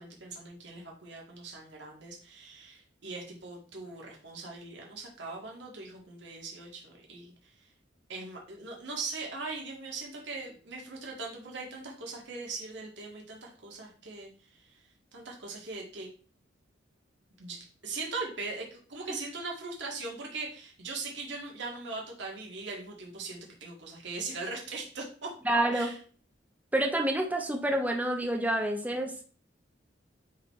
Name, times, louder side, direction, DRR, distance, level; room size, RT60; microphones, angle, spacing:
voice 1, 0.0-7.7 8.1-14.9 15.1-16.1 17.4-25.3 25.7-26.0, right 3 dB, 70° right, -1 dB, 1.9 m, -40 dB
voice 2, 25.5-25.9 26.7-29.2, right 1 dB, 10° right, 3 dB, 0.9 m, -28 dB
9.3 x 4.1 x 3.1 m, 0.41 s
head